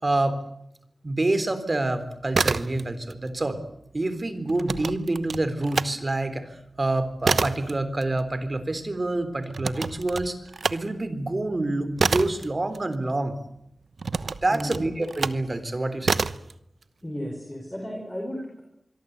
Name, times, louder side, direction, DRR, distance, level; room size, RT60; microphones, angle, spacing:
voice 1, 0.0-0.4 1.0-3.6 3.9-10.4 10.7-13.4 14.4-16.2, right 2 dB, 35° right, 12 dB, 3.7 m, -27 dB
sound 1, 2.2-3.2 3.4-5.9 6.3-13.4 14.0-15.5 16.0-16.5, right 4 dB, 75° right, 1.0 m, -28 dB
voice 2, 17.0-18.6, equal, 10° left, 1 dB, 5.1 m, -34 dB
25.0 x 22.5 x 8.2 m, 0.76 s
wide cardioid pair, 90°, 0 cm